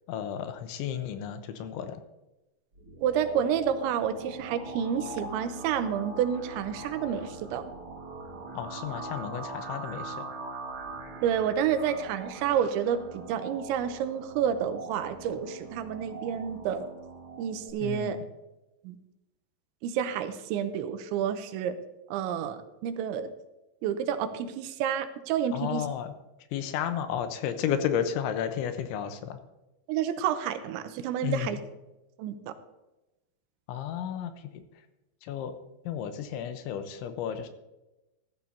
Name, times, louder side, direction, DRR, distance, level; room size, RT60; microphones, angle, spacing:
voice 1, 0.1-2.0 8.5-10.3 17.8-18.2 25.5-26.1 26.5-29.4 31.2-31.6 33.7-34.6 35.2-35.5 35.8-37.5, left 9 dB, 85° left, 8 dB, 3.3 m, -32 dB
sound 1, 2.7-17.7, right 3 dB, 60° right, 1.4 m, -42 dB
voice 2, 3.0-7.6 11.2-16.9 17.4-18.2 18.8-19.0 19.8-21.7 22.1-23.3 23.8-25.8 29.9-31.6 32.2-32.5, right 8 dB, 90° right, 9 dB, 3.0 m, -29 dB
14.5 x 13.5 x 2.8 m, 0.99 s
omnidirectional pair, 5.3 m